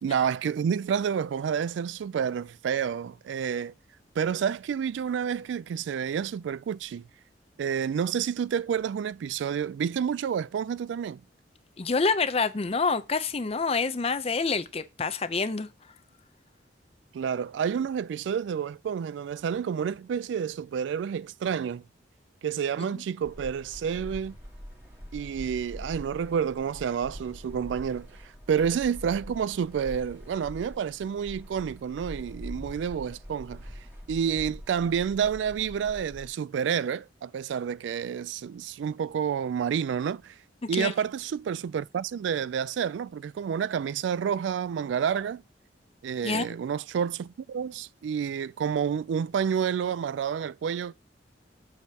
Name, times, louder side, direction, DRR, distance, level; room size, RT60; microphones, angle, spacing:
voice 1, 0.0-3.7 4.2-7.0 7.6-11.2 17.1-21.8 22.4-24.4 25.1-33.7 34.1-40.4 40.7-45.4 46.0-50.9, right 7 dB, 80° right, 0.3 m, -29 dB
voice 2, 11.8-15.7 40.7-40.9 46.2-46.4, left 4 dB, 35° left, 0.6 m, -27 dB
sound 1, 23.2-36.3, equal, 15° right, 2.2 m, -44 dB
8.3 x 6.4 x 2.8 m
head